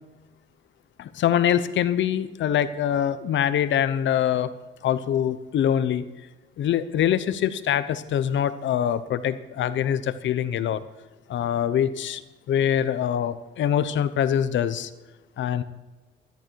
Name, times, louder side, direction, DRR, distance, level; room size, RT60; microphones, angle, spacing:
voice 1, 1.0-4.5 4.8-6.0 6.6-10.8 11.3-12.2 12.5-14.9 15.4-15.6, left 10 dB, 70° left, 13 dB, 0.9 m, -24 dB
13.5 x 11.5 x 4.7 m, 1.2 s
cardioid pair, 90°, 20 cm